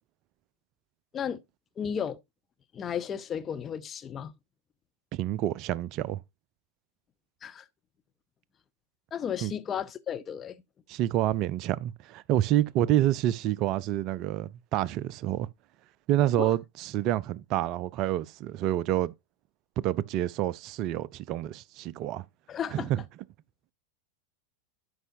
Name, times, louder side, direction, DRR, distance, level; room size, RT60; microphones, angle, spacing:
voice 1, 1.8-2.2 2.7-4.3 7.4-7.7 9.1-10.6 16.4-16.5 22.5-22.9, left 8 dB, 25° left, 0.6 m, -34 dB
voice 2, 5.1-6.2 9.4-9.5 10.9-15.5 16.1-19.1 19.8-22.2 22.7-23.0, right 13 dB, 40° right, 0.4 m, -28 dB
12.5 x 5.4 x 2.7 m
figure-of-eight pair, 90°, 0 cm